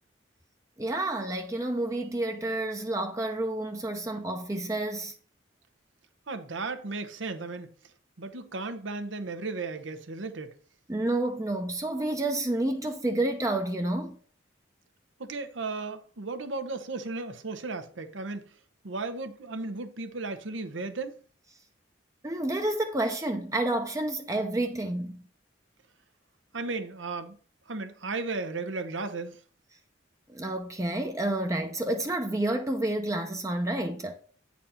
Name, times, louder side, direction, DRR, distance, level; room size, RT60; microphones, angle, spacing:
voice 1, 0.8-5.1 10.9-14.2 22.2-25.2 30.3-34.1, right 1 dB, 15° right, 0.6 m, -29 dB
voice 2, 6.3-7.7 8.2-10.6 15.2-18.5 18.8-21.2 26.5-27.4 27.7-29.4, right 3 dB, 85° right, 1.0 m, -35 dB
8.8 x 4.2 x 5.6 m
head